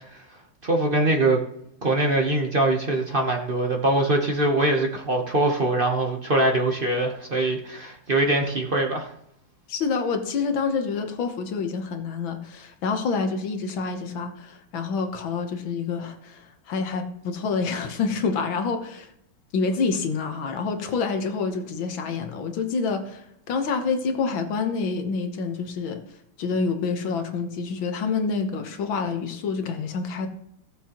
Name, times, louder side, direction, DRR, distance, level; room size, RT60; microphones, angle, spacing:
voice 1, 0.6-1.4 1.8-9.1, right 2 dB, 45° right, 0.7 m, -23 dB
voice 2, 9.7-19.1 19.5-26.0 26.4-30.3, left 4 dB, 65° left, 1.8 m, -27 dB
16.5 x 7.4 x 3.0 m
omnidirectional pair, 2.4 m